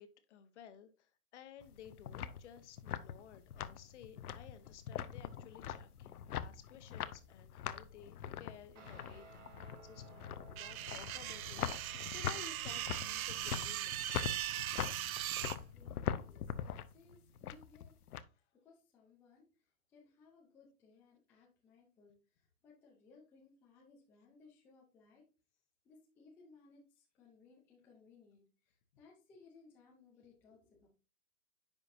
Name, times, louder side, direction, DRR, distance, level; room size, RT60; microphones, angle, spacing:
voice 1, 0.0-14.2, left 9 dB, 50° left, 1.2 m, -56 dB
sound 1, 1.6-18.2, left 9 dB, 75° left, 0.8 m, -43 dB
Guitar, 8.8-17.5, right 4 dB, 50° right, 2.9 m, -60 dB
sound 2, 10.6-15.6, right 13 dB, 65° right, 0.5 m, -40 dB
voice 2, 15.2-17.9 18.5-19.5 19.9-25.3 25.8-30.9, left 4 dB, 5° left, 0.4 m, -63 dB
10.0 x 5.2 x 2.6 m
hypercardioid pair, 140°, 45 cm